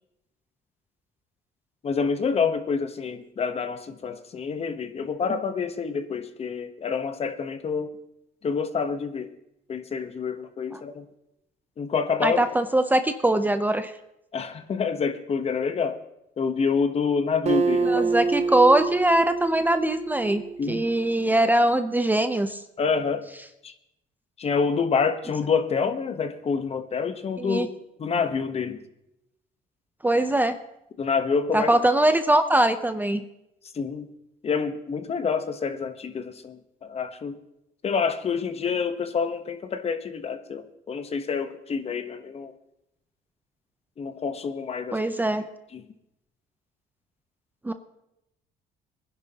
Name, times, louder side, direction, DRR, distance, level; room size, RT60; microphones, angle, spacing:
voice 1, 1.8-7.9 8.4-9.3 9.7-11.1 11.8-12.4 14.3-16.0 16.4-18.1 20.6-20.8 22.8-23.2 23.6-23.7 24.4-27.7 28.0-28.8 31.0-31.7 33.7-34.1 34.4-37.4 37.8-42.5 44.0-45.0 45.7-45.8, left 5 dB, 35° left, 10 dB, 1.0 m, -27 dB
voice 2, 12.2-13.9 17.8-22.6 27.4-27.7 30.0-30.6 31.5-33.2 44.9-45.5 47.6-47.7, right 1 dB, 10° right, 9 dB, 0.6 m, -22 dB
Acoustic guitar, 17.5-21.0, right 4 dB, 40° right, 0.9 m, -27 dB
23.0 x 10.5 x 2.9 m, 0.86 s
cardioid pair, 110°, 17 cm